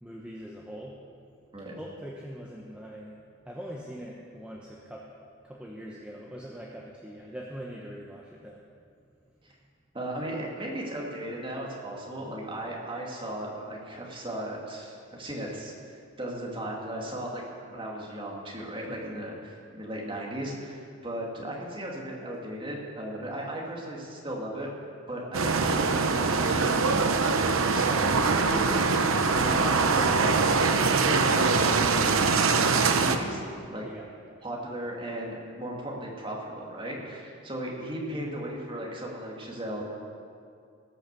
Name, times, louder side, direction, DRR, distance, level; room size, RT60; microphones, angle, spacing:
voice 1, 0.0-1.0 1.8-3.2 3.4-5.1 5.4-8.6 18.9-19.2 33.8-34.0, equal, 5° right, -3 dB, 1.0 m, -42 dB
voice 2, 9.9-17.4 17.7-24.7 25.1-30.1 30.4-33.8 34.4-39.8, right 1 dB, 25° right, -2 dB, 2.2 m, -36 dB
sound 1, 25.3-33.2, right 4 dB, 90° right, 0.8 m, -23 dB
18.5 x 6.6 x 6.8 m, 2.3 s
head